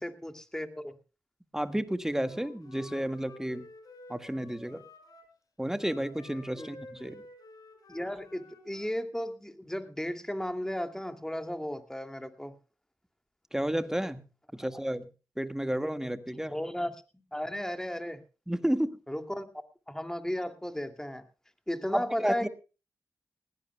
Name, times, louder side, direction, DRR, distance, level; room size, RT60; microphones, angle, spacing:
voice 1, 0.0-1.0 6.6-6.7 7.9-12.5 14.6-14.8 16.5-16.9 17.3-18.2 19.1-19.5 19.9-21.2 21.7-22.5, equal, 10° left, 7 dB, 2.4 m, -35 dB
voice 2, 1.5-3.6 4.1-4.8 5.6-7.2 13.5-14.2 14.5-15.1 15.4-16.6 18.5-19.0 21.9-22.5, right 1 dB, 5° right, 10 dB, 1.7 m, -31 dB
Wind instrument woodwind instrument, 2.2-5.3 5.8-9.0, left 2 dB, 75° left, 5.8 m, -51 dB
20.5 x 17.0 x 2.2 m, 0.32 s
cardioid pair, 50°, 7 cm